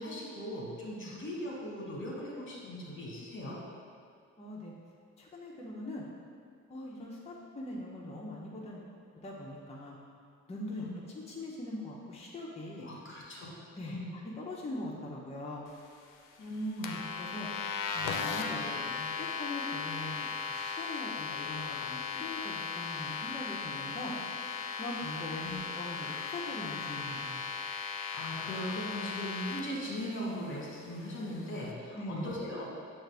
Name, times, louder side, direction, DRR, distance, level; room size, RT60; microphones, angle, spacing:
voice 1, 0.0-3.6 10.7-10.9 12.8-13.5 13.9-14.1 16.4-17.0 25.4-25.6 28.1-32.7, equal, 40° left, -4 dB, 1.4 m, -39 dB
voice 2, 4.4-4.7 5.2-6.0 6.7-8.8 9.2-10.0 10.5-10.9 11.3-12.9 13.7-15.7 16.8-17.5 17.9-24.1 24.7-27.5 31.9-32.3, left 1 dB, 20° left, -5 dB, 0.7 m, -42 dB
sound 1, 16.8-29.6, left 5 dB, 80° left, 0.5 m, -37 dB
6.1 x 2.5 x 3.4 m, 2.3 s
cardioid pair, 75°, 31 cm